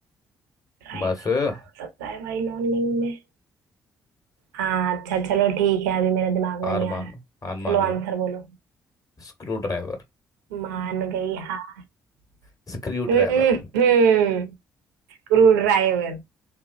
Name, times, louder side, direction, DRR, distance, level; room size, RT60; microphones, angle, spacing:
voice 1, 0.9-1.6 6.6-7.1 7.4-8.0 9.2-10.0 12.7-13.4, left 3 dB, 40° left, 1.3 m, -28 dB
voice 2, 2.0-3.2 4.5-7.1 7.7-8.5 10.5-11.8 13.1-14.5 15.3-16.2, right 7 dB, 90° right, 0.5 m, -22 dB
3.0 x 2.3 x 2.7 m
hypercardioid pair, 45°, 9 cm